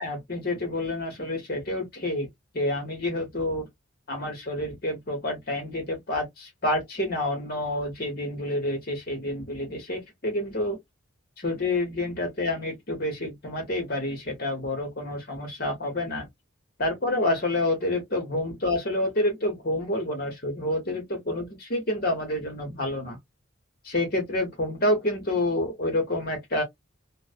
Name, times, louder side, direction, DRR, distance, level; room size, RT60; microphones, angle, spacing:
voice 1, 0.0-2.3 2.5-3.7 4.1-10.8 11.4-16.3 16.8-23.2 23.8-26.6, left 1 dB, 45° left, 1.2 m, -28 dB
2.4 x 2.1 x 2.4 m
head